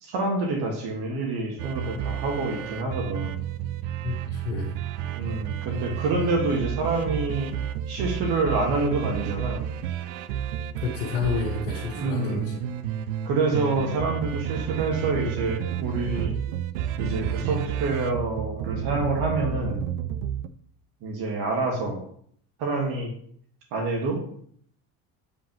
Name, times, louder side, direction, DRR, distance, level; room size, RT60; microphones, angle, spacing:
voice 1, 0.0-3.4 5.1-7.5 7.9-9.6 11.9-12.4 13.2-16.3 17.0-19.8 21.0-22.0 22.6-23.1 23.7-24.2, right 3 dB, 60° right, 1 dB, 1.7 m, -27 dB
sound 1, 1.6-20.5, right 10 dB, 80° right, 0.6 m, -31 dB
voice 2, 4.0-4.7 10.8-12.5, left 5 dB, 90° left, -4 dB, 1.3 m, -30 dB
7.2 x 5.2 x 3.0 m, 0.62 s
hypercardioid pair, 80°, 42 cm